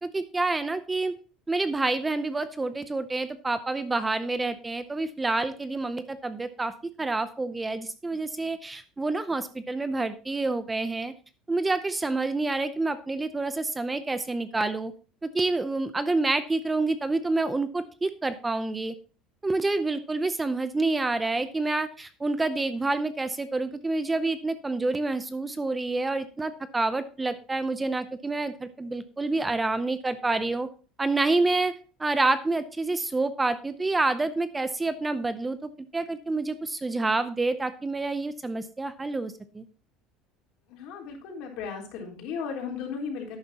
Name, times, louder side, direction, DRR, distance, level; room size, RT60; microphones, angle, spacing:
voice 1, 0.0-1.1 1.5-6.7 7.0-11.1 11.5-14.9 15.2-18.9 19.4-30.7 31.0-31.7 32.0-39.6, right 3 dB, 10° right, 12 dB, 0.6 m, -28 dB
voice 2, 40.7-43.4, left 6 dB, 65° left, 1 dB, 3.7 m, -35 dB
11.5 x 9.3 x 2.9 m, 0.36 s
cardioid pair, 145°, 0 cm